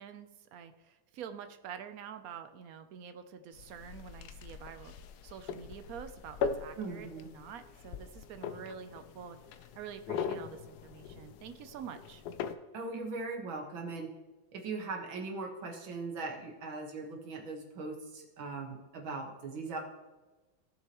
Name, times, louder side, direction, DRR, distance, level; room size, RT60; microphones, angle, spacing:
voice 1, 0.0-4.9 5.2-12.2, right 8 dB, 65° right, 9 dB, 0.9 m, -47 dB
sound 1, 3.5-12.5, left 6 dB, 70° left, 1.0 m, -41 dB
voice 2, 6.8-7.3 12.7-14.1 14.5-19.8, right 3 dB, 85° right, 2 dB, 2.2 m, -39 dB
15.5 x 7.0 x 3.0 m, 1.2 s
omnidirectional pair, 2.1 m